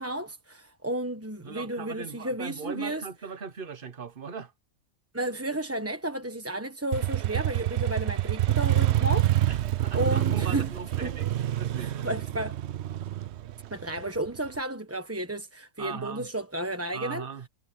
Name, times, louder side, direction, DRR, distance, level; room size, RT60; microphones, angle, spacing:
voice 1, 0.0-3.0 5.1-9.3 9.9-10.7 11.0-11.1 11.8-12.6 13.7-17.3, right 1 dB, 10° right, 1.0 m, -32 dB
voice 2, 1.4-4.5 9.5-12.1 15.8-16.3 16.9-17.5, right 5 dB, 40° right, 1.3 m, -39 dB
Motorcycle, 6.9-14.6, right 13 dB, 60° right, 0.8 m, -27 dB
omnidirectional pair, 1.5 m